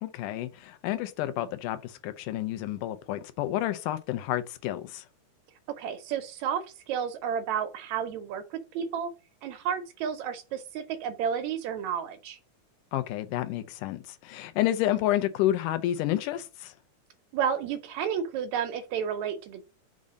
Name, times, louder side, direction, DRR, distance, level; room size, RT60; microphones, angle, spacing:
voice 1, 0.0-5.1 12.9-16.7, left 13 dB, 85° left, 2.2 m, -30 dB
voice 2, 5.8-9.1 9.4-12.4 17.3-19.6, right 8 dB, 75° right, 1.8 m, -31 dB
5.4 x 3.7 x 5.2 m
omnidirectional pair, 3.6 m